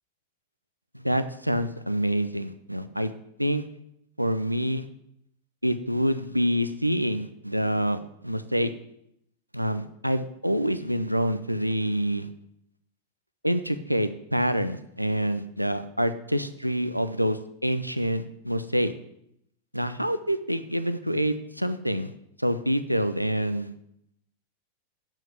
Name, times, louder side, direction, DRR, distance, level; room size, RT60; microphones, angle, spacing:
voice 1, 1.0-3.1 3.4-3.6 4.2-4.8 5.6-8.7 9.5-12.3 13.4-18.9 19.7-22.1 22.4-23.7, equal, 90° right, 12 dB, 0.6 m, -26 dB
7.9 x 7.3 x 8.0 m, 0.75 s
figure-of-eight pair, 90°, 0 cm